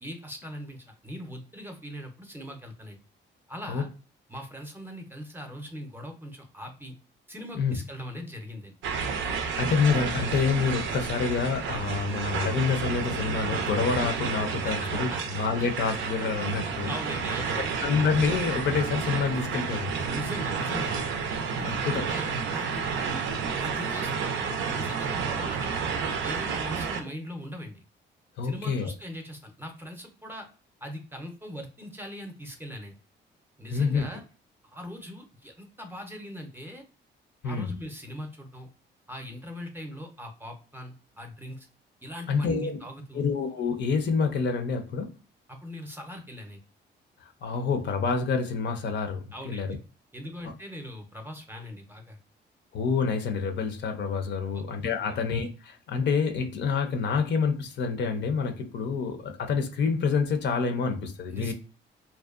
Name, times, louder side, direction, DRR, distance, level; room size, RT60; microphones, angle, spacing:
voice 1, 0.0-3.0 3.5-3.9 4.3-6.9 7.3-8.8 14.6-15.2 15.6-15.7 16.9-17.8 20.1-21.1 21.6-23.2 23.6-25.9 26.2-27.8 28.4-30.5 30.8-33.0 33.6-34.2 34.7-36.8 37.4-38.7 39.1-41.7 42.0-43.2 45.5-46.6 49.3-49.8 50.1-52.2 54.4-54.6 55.0-55.2 61.3-61.5, equal, 10° right, 0.6 m, -40 dB
sound 1, 8.8-27.0, right 5 dB, 75° right, 0.4 m, -30 dB
voice 2, 9.6-15.1 15.3-17.0 17.6-20.0 21.6-22.1 28.4-28.9 33.7-34.0 37.4-37.7 42.3-42.8 43.1-45.1 47.2-49.8 52.7-61.5, left 5 dB, 60° left, 0.5 m, -27 dB
2.6 x 2.1 x 2.4 m
cardioid pair, 90°, 20 cm